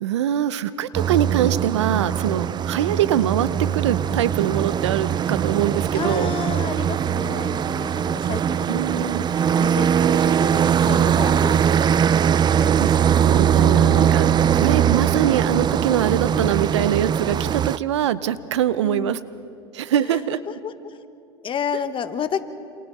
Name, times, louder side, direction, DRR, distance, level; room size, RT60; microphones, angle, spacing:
voice 1, 0.0-6.3 8.7-9.3 12.8-12.9 13.2-19.2 19.7-20.4, right 11 dB, 90° right, 16 dB, 0.7 m, -23 dB
sound 1, 0.9-17.8, right 8 dB, 30° right, 0.5 m, -21 dB
voice 2, 5.9-12.7 18.8-19.2 20.0-20.2 20.5-21.0 21.4-22.4, left 7 dB, 35° left, 10 dB, 1.5 m, -31 dB
28.0 x 28.0 x 4.2 m, 2.6 s
hypercardioid pair, 90°, 14 cm